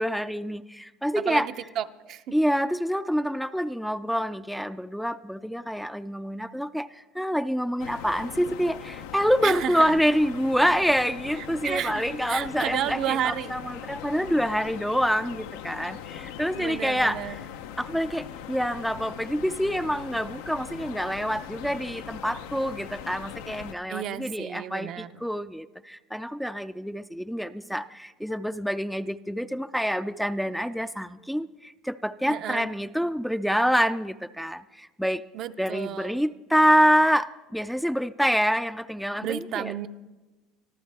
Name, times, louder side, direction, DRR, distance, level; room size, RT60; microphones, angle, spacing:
voice 1, 0.0-1.5 2.3-17.4 17.8-35.2 35.6-39.7, equal, ahead, 11 dB, 0.4 m, -26 dB
voice 2, 1.1-2.3 9.4-10.0 11.6-13.5 16.6-17.4 23.9-25.3 32.3-32.7 35.3-36.2 39.2-39.9, right 10 dB, 55° right, 10 dB, 0.6 m, -32 dB
sound 1, 7.8-23.8, left 9 dB, 85° left, 0.7 m, -40 dB
24.5 x 13.5 x 3.4 m, 1.2 s
supercardioid pair, 115°, 0 cm